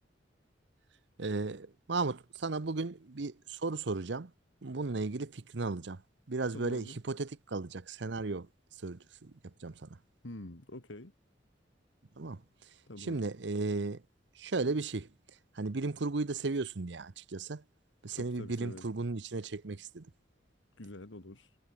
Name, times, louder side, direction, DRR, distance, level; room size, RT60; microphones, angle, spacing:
voice 1, 1.2-4.3 4.6-6.0 6.3-8.5 8.8-9.9 12.2-12.4 13.0-14.0 14.4-15.1 15.5-17.6 18.0-20.1, right 3 dB, 65° right, 0.8 m, -35 dB
voice 2, 6.5-7.0 10.2-11.1 12.9-13.3 18.1-18.9 20.8-21.6, left 1 dB, 90° left, 2.3 m, -46 dB
head